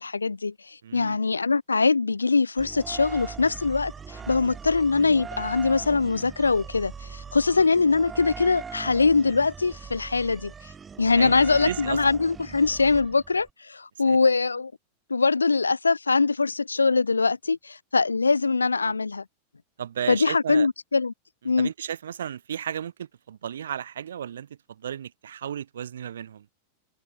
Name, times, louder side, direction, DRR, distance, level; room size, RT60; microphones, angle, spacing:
voice 1, 0.0-10.5 11.0-14.7 15.1-19.2 20.1-21.1 21.4-21.7, left 4 dB, 80° left, 0.5 m, -23 dB
voice 2, 0.8-1.2 7.4-7.5 11.1-11.3 11.6-12.0 14.1-14.2 18.8-18.9 19.8-20.7 21.6-24.5 24.8-26.4, right 9 dB, 65° right, 6.7 m, -34 dB
sound 1, 2.6-13.5, right 6 dB, 20° right, 6.2 m, -40 dB
figure-of-eight pair, 90°, 0 cm